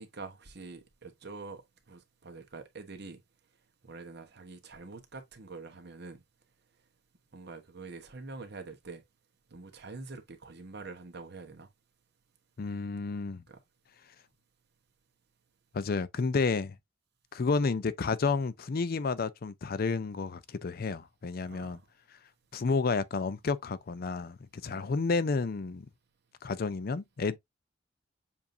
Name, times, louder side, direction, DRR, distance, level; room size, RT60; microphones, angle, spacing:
voice 1, 0.0-3.2 3.8-6.2 7.3-9.0 9.5-11.7 13.5-13.6 21.5-21.9 24.7-24.9, right 3 dB, 60° right, 1.1 m, -45 dB
voice 2, 12.6-13.4 15.7-16.8 17.3-21.8 22.5-24.4 24.6-25.9 26.4-27.4, left 4 dB, 50° left, 0.5 m, -30 dB
7.1 x 2.6 x 2.6 m
head